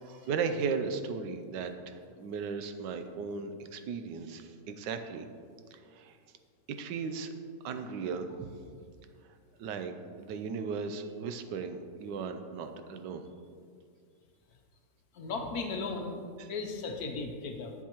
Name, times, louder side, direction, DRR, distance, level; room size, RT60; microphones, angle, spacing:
voice 1, 0.0-5.3 5.7-6.2 6.8-7.3 7.6-8.5 9.6-13.3 16.4-16.5, right 5 dB, 80° right, 8 dB, 1.3 m, -36 dB
voice 2, 15.1-16.2 16.5-17.7, left 4 dB, 65° left, 3 dB, 1.1 m, -36 dB
10.5 x 7.3 x 2.9 m, 2.1 s
omnidirectional pair, 1.9 m